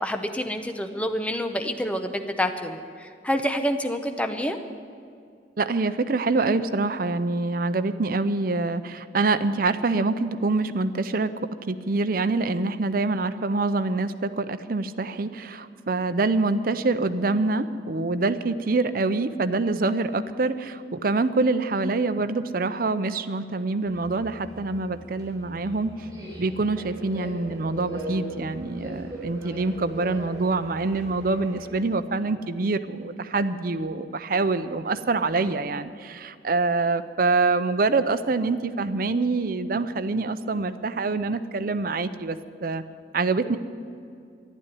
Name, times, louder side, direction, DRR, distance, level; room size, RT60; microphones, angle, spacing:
voice 1, 0.0-4.6, equal, 10° left, 6 dB, 0.8 m, -28 dB
voice 2, 5.6-11.3 11.7-26.1 26.4-42.8 43.1-43.6, right 3 dB, 55° right, 11 dB, 0.6 m, -25 dB
Subway metro underground, 23.8-31.8, right 1 dB, 20° right, 4.5 m, -40 dB
12.0 x 11.0 x 10.0 m, 2.3 s
head